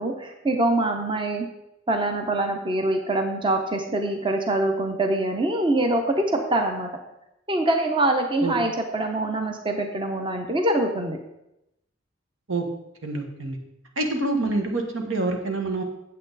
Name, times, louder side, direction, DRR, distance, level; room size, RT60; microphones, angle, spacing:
voice 1, 0.0-1.5 1.9-6.9 7.5-11.2, right 2 dB, 25° right, 4 dB, 0.7 m, -24 dB
voice 2, 13.0-13.6 14.0-15.8, right 2 dB, 80° right, 3 dB, 1.4 m, -26 dB
8.6 x 7.6 x 4.0 m, 0.88 s
head